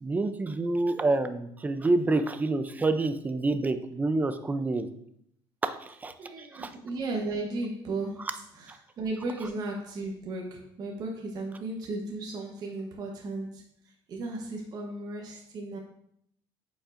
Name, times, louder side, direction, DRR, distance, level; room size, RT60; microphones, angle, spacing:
voice 1, 0.0-4.9 5.6-6.7 8.2-8.3 8.7-8.8, right 2 dB, 15° right, 10 dB, 0.5 m, -28 dB
voice 2, 6.2-8.3 8.6-13.6 14.1-15.8, right 2 dB, 45° right, 0 dB, 1.0 m, -35 dB
8.4 x 5.2 x 2.6 m, 0.72 s
cardioid pair, 125°, 10 cm